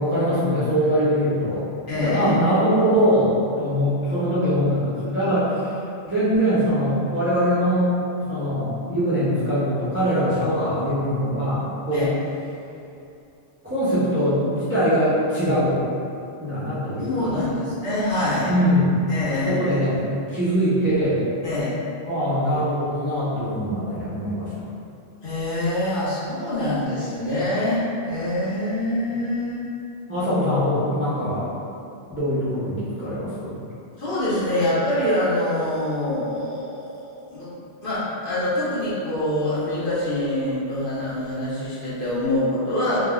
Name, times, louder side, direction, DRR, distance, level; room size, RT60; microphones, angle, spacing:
voice 1, 0.0-1.7 1.9-5.8 6.0-7.9 8.3-12.1 13.6-15.8 16.4-17.5 18.5-19.0 19.5-21.2 22.1-24.5 30.1-31.5 32.1-33.6, equal, 20° right, -13 dB, 0.4 m, -22 dB
voice 2, 1.9-2.3 11.9-12.1 17.0-18.5 19.1-19.8 21.4-21.7 25.2-29.6 34.0-37.5 37.8-43.0, left 1 dB, 50° left, -12 dB, 0.9 m, -25 dB
3.3 x 2.1 x 2.3 m, 2.6 s
omnidirectional pair, 1.3 m